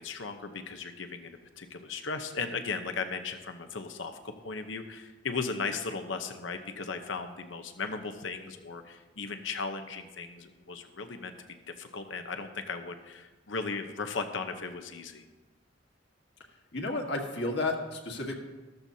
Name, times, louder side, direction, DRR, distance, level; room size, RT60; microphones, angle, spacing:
voice 1, 0.0-1.3 1.6-11.3 11.7-15.2, left 4 dB, 80° left, 7 dB, 0.9 m, -36 dB
voice 2, 16.7-18.4, left 2 dB, 65° left, 2 dB, 1.7 m, -32 dB
13.5 x 13.5 x 2.8 m, 1.2 s
head